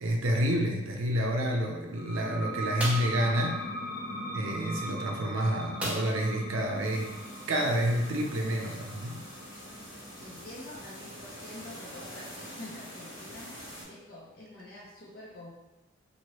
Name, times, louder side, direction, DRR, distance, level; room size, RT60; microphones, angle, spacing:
voice 1, 0.0-3.6 4.3-7.2 7.5-9.2, equal, 75° right, 1 dB, 0.5 m, -29 dB
sound 1, 1.9-13.2, equal, 15° left, 0.9 m, -40 dB
sound 2, 2.8-3.2 5.8-6.4 6.7-6.8 7.2-7.4, right 1 dB, 5° right, 0.5 m, -34 dB
sound 3, 6.8-13.8, equal, 75° left, 1.1 m, -46 dB
voice 2, 10.2-15.5, left 1 dB, 45° left, -6 dB, 0.5 m, -47 dB
2.8 x 2.7 x 3.0 m, 1.0 s
head